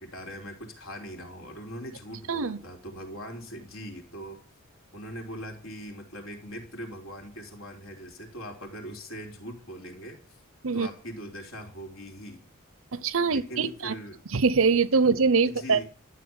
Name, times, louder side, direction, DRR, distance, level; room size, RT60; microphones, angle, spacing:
voice 1, 0.0-4.4 4.9-10.2 10.7-12.4 13.3-14.2 15.4-15.8, equal, 70° left, 3.5 m, -41 dB
voice 2, 12.9-13.9 14.3-15.8, right 4 dB, 75° right, 0.8 m, -23 dB
12.5 x 7.1 x 9.7 m
head